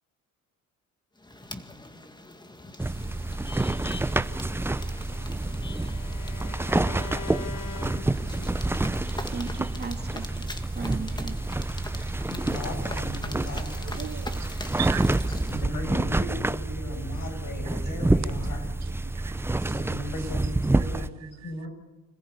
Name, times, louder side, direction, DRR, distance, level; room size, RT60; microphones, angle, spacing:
sound 1, 1.2-15.6, left 2 dB, 15° left, 1.9 m, -43 dB
sound 2, 2.8-21.1, right 2 dB, 5° right, 0.6 m, -28 dB
Bowed string instrument, 4.5-8.7, left 6 dB, 55° left, 1.5 m, -43 dB
voice 1, 9.3-12.1, right 5 dB, 30° right, 2.5 m, -38 dB
voice 2, 12.3-14.0 15.3-18.7 19.7-21.7, left 1 dB, 75° left, 7.3 m, -37 dB
voice 3, 13.9-14.5 14.8-15.3 19.2-19.7 20.7-21.0 21.4-21.5, right 12 dB, 55° right, 0.7 m, -38 dB
26.5 x 15.0 x 8.3 m
cardioid pair, 80°, 32 cm